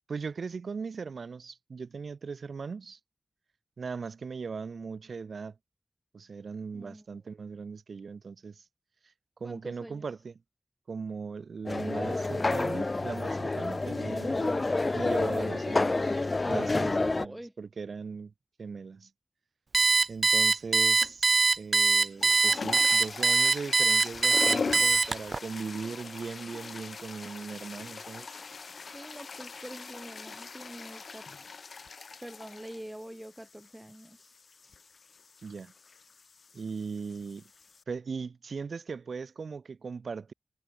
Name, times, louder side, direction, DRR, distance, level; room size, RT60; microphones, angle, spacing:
voice 1, 0.0-3.0 3.8-5.5 6.1-8.6 9.4-10.3 10.9-14.7 14.9-18.3 18.6-19.1 20.1-28.3 35.4-35.7 36.5-37.4 37.9-40.3, right 5 dB, 85° right, 3.3 m, -39 dB
voice 2, 6.7-7.2 9.4-10.0 17.0-17.5 28.8-31.2 32.2-34.3, right 1 dB, 15° right, 6.3 m, -45 dB
sound 1, 11.7-17.3, left 2 dB, 50° left, 0.9 m, -28 dB
Alarm, 19.7-25.4, right 4 dB, 70° right, 0.9 m, -22 dB
sound 2, 21.0-21.3 22.0-37.8, left 4 dB, 80° left, 5.5 m, -41 dB
cardioid pair, 40°, 0 cm